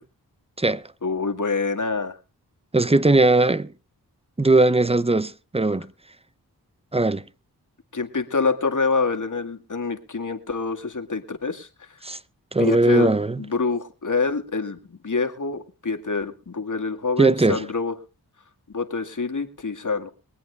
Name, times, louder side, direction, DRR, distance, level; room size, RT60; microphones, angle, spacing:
voice 1, 1.0-2.2 7.9-11.9 12.6-13.1 13.4-17.9 18.7-20.1, left 4 dB, 50° left, 2.1 m, -26 dB
voice 2, 2.7-3.7 4.4-5.9 6.9-7.2 12.0-12.2 12.5-13.4 17.2-17.6, right 2 dB, 15° right, 0.8 m, -19 dB
23.0 x 8.5 x 3.4 m
cardioid pair, 40°, 38 cm